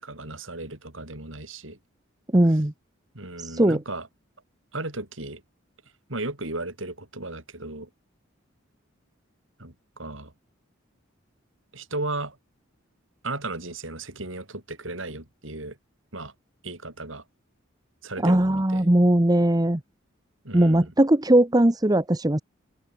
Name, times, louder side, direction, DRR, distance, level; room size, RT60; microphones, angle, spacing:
voice 1, 0.0-1.8 3.1-4.1 4.7-5.4 6.1-7.9 9.6-10.3 11.7-12.4 13.2-15.8 16.1-16.3 16.6-17.2 18.0-18.9 20.4-20.9, right 2 dB, 70° right, 5.6 m, -35 dB
voice 2, 2.3-2.7 3.6-3.8 18.2-19.8 20.5-22.4, right 1 dB, 20° right, 1.0 m, -19 dB
open air
head